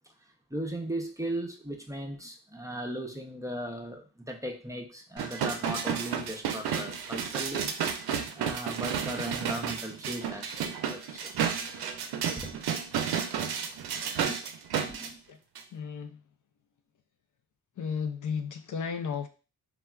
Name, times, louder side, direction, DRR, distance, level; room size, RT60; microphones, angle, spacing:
voice 1, 0.5-7.7 8.3-11.3 12.4-12.7 14.3-14.4 14.9-15.2, right 1 dB, 10° right, 1 dB, 0.5 m, -37 dB
sound 1, 5.2-15.1 15.6-15.7, right 7 dB, 75° right, 0.5 m, -32 dB
voice 2, 15.7-16.2 17.8-19.3, left 6 dB, 55° left, 7 dB, 0.4 m, -34 dB
3.3 x 2.3 x 2.3 m, 0.34 s
cardioid pair, 50°, 39 cm